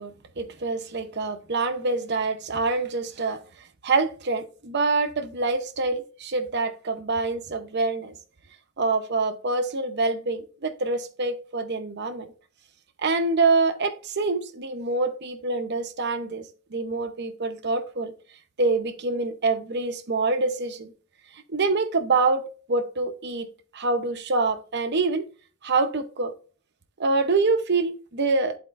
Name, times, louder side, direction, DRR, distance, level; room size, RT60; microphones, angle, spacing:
voice 1, 0.0-3.4 3.8-8.1 8.8-12.3 13.0-16.4 16.7-18.1 18.6-20.9 21.5-23.5 23.7-25.2 25.6-26.3 27.0-28.6, right 3 dB, 50° right, 0.8 m, -25 dB
10.5 x 4.3 x 2.5 m
head